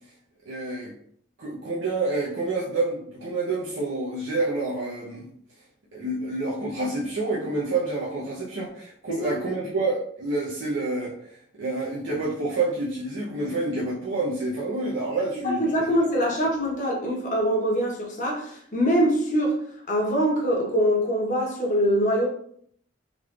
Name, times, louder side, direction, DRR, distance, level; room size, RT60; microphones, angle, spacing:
voice 1, 0.5-0.9 1.4-5.3 5.9-15.9, right 2 dB, 80° right, 0.8 m, -28 dB
voice 2, 15.4-19.6 19.9-22.3, equal, 40° left, 1.0 m, -23 dB
3.8 x 3.2 x 2.4 m
head